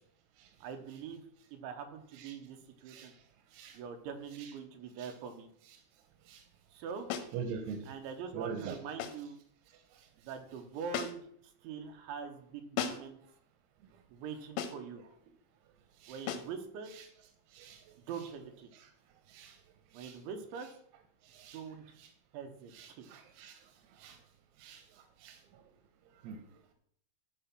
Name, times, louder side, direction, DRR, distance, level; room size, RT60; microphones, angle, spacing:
voice 1, 0.6-1.2 1.5-3.1 3.7-5.5 6.7-7.1 7.9-9.4 10.2-11.2 11.6-13.2 14.1-15.0 16.1-16.9 18.1-18.7 19.9-20.7 21.5-21.8 22.3-23.1, right 6 dB, 75° right, 5 dB, 3.1 m, -43 dB
sound 1, 7.1-7.4 9.0-9.3 10.9-11.4 12.8-13.2 14.6-14.9 16.3-16.6, left 8 dB, 85° left, 3.6 m, -37 dB
voice 2, 7.3-7.9 8.3-8.8 12.9-13.0 15.0-15.1 16.0-16.2 16.9-17.1 17.5-17.8 18.7-18.9 19.3-19.6 20.0-20.2 21.3-21.6 22.0-22.1 22.7-23.6 24.0-24.2 24.6-24.8 25.2-25.4 26.2-26.4, right 6 dB, 90° right, 6 dB, 3.8 m, -43 dB
14.0 x 4.8 x 6.0 m, 0.65 s
omnidirectional pair, 6.0 m